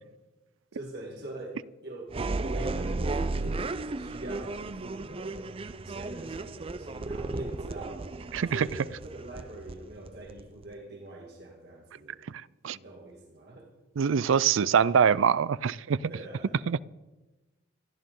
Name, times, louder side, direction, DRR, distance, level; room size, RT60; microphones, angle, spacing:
voice 1, 0.7-1.6 1.8-3.7 4.0-5.5 5.8-8.0 8.5-12.2 12.7-13.7 16.1-16.7, right 1 dB, 55° right, 2.3 m, -43 dB
sound 1, 2.1-10.7, right 3 dB, 30° right, 0.5 m, -34 dB
voice 2, 8.3-8.7 12.3-12.8 14.0-16.0 16.7-16.8, right 7 dB, 85° right, 0.4 m, -24 dB
27.0 x 11.5 x 3.8 m
head